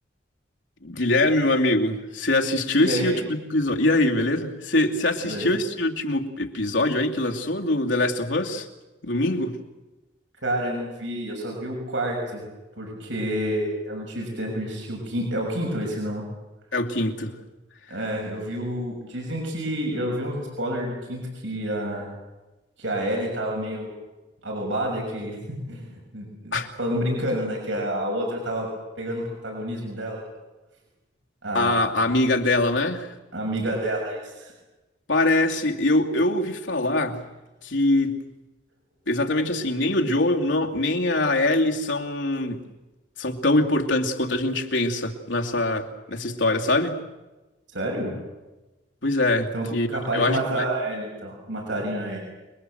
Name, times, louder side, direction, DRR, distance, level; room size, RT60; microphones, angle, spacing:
voice 1, 0.8-8.7 9.0-9.6 16.7-17.4 26.5-26.7 31.5-33.1 35.1-37.2 37.6-38.2 39.1-42.6 43.2-47.0 49.0-49.9 50.1-50.7, left 2 dB, 85° left, 2 dB, 2.6 m, -23 dB
voice 2, 2.8-3.2 5.2-5.5 10.4-12.4 12.8-16.2 17.9-22.1 22.8-23.9 24.4-28.7 29.0-30.2 31.4-31.8 33.3-34.5 47.7-48.1 49.5-52.2, right 1 dB, 85° right, 0 dB, 6.5 m, -29 dB
27.5 x 22.0 x 7.9 m, 1.1 s
head